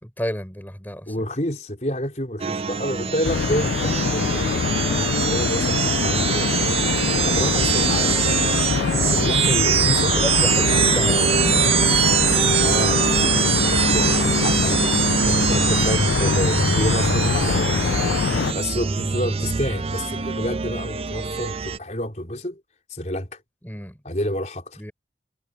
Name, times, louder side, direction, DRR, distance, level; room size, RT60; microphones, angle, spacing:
voice 1, 0.0-1.1 3.0-3.1 4.9-5.1 9.0-9.2 10.1-11.3 15.2-15.4 18.3-18.6 23.6-24.0 24.8-24.9, equal, 10° left, 4.8 m, -32 dB
voice 2, 1.1-4.5 5.2-6.8 7.2-8.6 9.0-10.2 10.5-11.5 12.6-18.1 18.5-22.6 22.9-23.4 24.0-24.8, left 1 dB, 40° left, 4.6 m, -29 dB
sound 1, 2.4-21.8, right 7 dB, 35° right, 0.4 m, -23 dB
sound 2, 3.2-18.5, left 5 dB, 80° left, 0.4 m, -23 dB
head